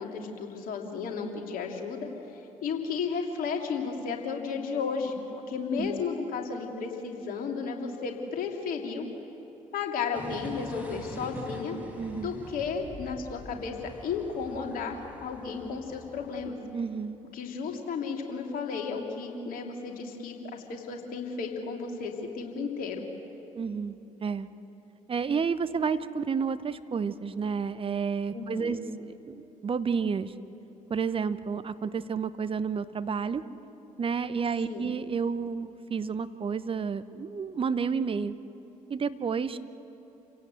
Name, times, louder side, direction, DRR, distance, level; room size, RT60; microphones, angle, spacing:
voice 1, 0.0-2.1 2.6-9.0 9.7-11.8 12.1-13.7 14.0-16.6 17.3-23.0 28.3-28.9 34.7-34.9, left 5 dB, 55° left, 2 dB, 3.0 m, -33 dB
sound 1, 10.1-16.5, equal, 10° right, 6.0 m, -44 dB
voice 2, 12.0-12.4 16.7-17.2 23.6-24.5 25.1-28.8 29.1-30.3 30.9-33.4 34.0-38.3 38.9-39.6, right 6 dB, 30° right, 12 dB, 1.0 m, -30 dB
28.5 x 17.0 x 8.0 m, 3.0 s
figure-of-eight pair, 50°, 18 cm